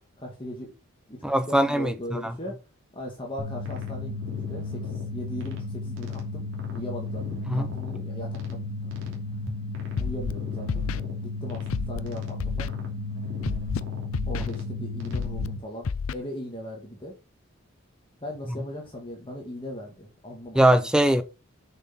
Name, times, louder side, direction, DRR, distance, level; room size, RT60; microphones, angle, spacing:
voice 1, 0.2-0.7 1.1-2.6 2.9-9.2 10.0-10.8 11.2-12.7 14.3-17.1 18.2-20.7, left 1 dB, 25° left, 2.0 m, -38 dB
voice 2, 1.2-2.3 7.5-7.7 20.5-21.2, right 1 dB, 5° right, 0.8 m, -21 dB
sound 1, 3.4-15.6, left 3 dB, 60° right, 2.9 m, -34 dB
Scratching (performance technique), 10.0-10.3 10.7-11.0 11.7-12.0 12.4-12.7 13.4-13.8 14.1-14.5 15.1-15.5 15.8-16.1, left 5 dB, 70° left, 0.5 m, -29 dB
6.9 x 6.6 x 5.8 m
head